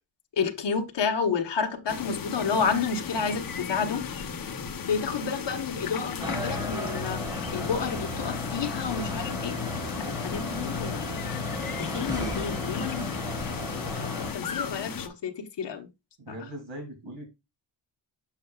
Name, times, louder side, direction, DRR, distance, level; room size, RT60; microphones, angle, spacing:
voice 1, 0.4-4.0 4.9-7.2 7.5-9.6 10.0-11.2 11.8-13.1 13.7-15.9 16.3-16.4, left 5 dB, 60° left, 1.2 m, -30 dB
sound 1, 1.9-15.1, left 7 dB, 45° left, 0.8 m, -36 dB
sound 2, 6.2-14.3, left 2 dB, 10° right, 1.7 m, -34 dB
voice 2, 16.2-17.3, right 1 dB, 70° right, 2.3 m, -40 dB
7.2 x 6.7 x 2.3 m
wide cardioid pair, 155°, 46 cm